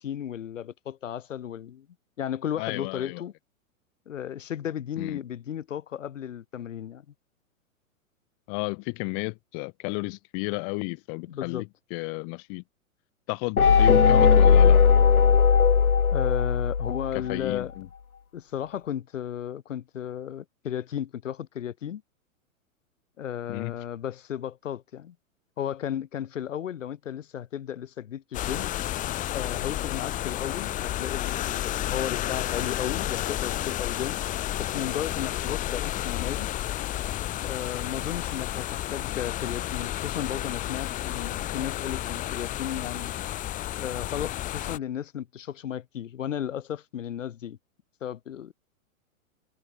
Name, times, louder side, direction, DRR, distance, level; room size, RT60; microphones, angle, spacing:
voice 1, 0.0-1.9 2.2-3.3 4.1-7.0 11.3-11.6 16.1-17.7 18.3-22.0 23.2-25.2 25.6-28.7 29.3-34.2 34.6-36.6 37.4-43.1 43.8-47.6 48.0-48.5, left 10 dB, 60° left, 4.3 m, -34 dB
voice 2, 2.6-3.2 5.0-5.2 8.5-12.6 13.3-14.8 17.1-17.9 23.5-23.7, left 40 dB or more, 40° left, 6.9 m, -33 dB
sound 1, 13.6-17.3, left 6 dB, 85° left, 0.9 m, -18 dB
sound 2, 28.3-44.8, left 14 dB, 20° left, 0.9 m, -31 dB
figure-of-eight pair, 110°, 42 cm